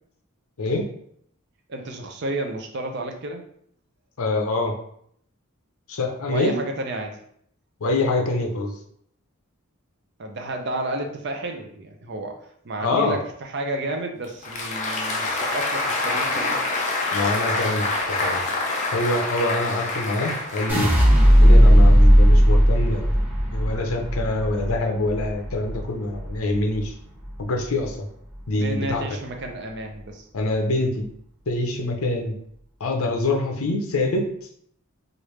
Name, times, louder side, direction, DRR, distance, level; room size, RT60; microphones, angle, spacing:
voice 1, 1.7-3.4 6.3-7.2 10.2-12.4 12.6-16.6 28.5-30.3, right 1 dB, 50° right, 3 dB, 0.5 m, -31 dB
voice 2, 4.2-4.7 5.9-6.6 7.8-8.7 12.8-13.2 17.1-17.9 18.2-18.4 18.9-20.9 21.4-23.1 23.5-26.9 27.4-28.1 28.5-29.2 30.3-31.1 31.5-32.3 32.8-34.3, left 2 dB, 80° left, 3 dB, 0.6 m, -25 dB
Applause, 14.2-21.4, left 2 dB, 35° left, 0.4 m, -26 dB
sound 1, 20.7-26.9 27.2-27.8, equal, 10° right, 0.7 m, -16 dB
3.2 x 2.5 x 3.1 m, 0.67 s
head